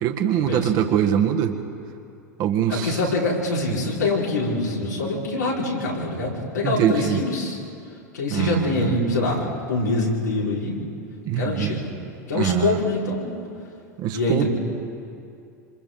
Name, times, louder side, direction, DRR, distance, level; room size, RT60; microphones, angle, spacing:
voice 1, 0.0-1.5 2.4-3.0 6.6-7.2 8.3-9.0 11.2-11.8 12.3-12.8 14.0-14.5, right 9 dB, 45° right, 4 dB, 1.7 m, -23 dB
voice 2, 2.7-7.6 8.1-10.8 11.3-11.9 12.3-13.3 14.1-14.5, left 2 dB, 85° left, -6 dB, 5.0 m, -24 dB
26.5 x 26.0 x 3.8 m, 2.5 s
hypercardioid pair, 90°, 9 cm